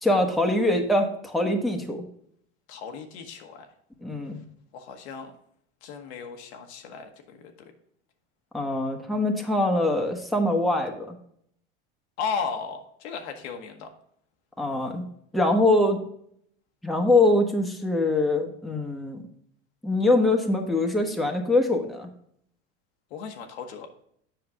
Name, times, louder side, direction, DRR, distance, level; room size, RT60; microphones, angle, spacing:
voice 1, 0.0-2.1 4.0-4.4 8.5-11.2 14.6-15.1 15.3-16.0 16.8-19.2 19.8-22.1, left 2 dB, ahead, 2 dB, 1.1 m, -23 dB
voice 2, 2.7-3.7 4.7-5.3 5.8-7.7 12.2-13.9 23.1-23.9, left 6 dB, 75° left, 4 dB, 1.2 m, -35 dB
7.8 x 5.7 x 3.6 m, 0.68 s
hypercardioid pair, 95°, 33 cm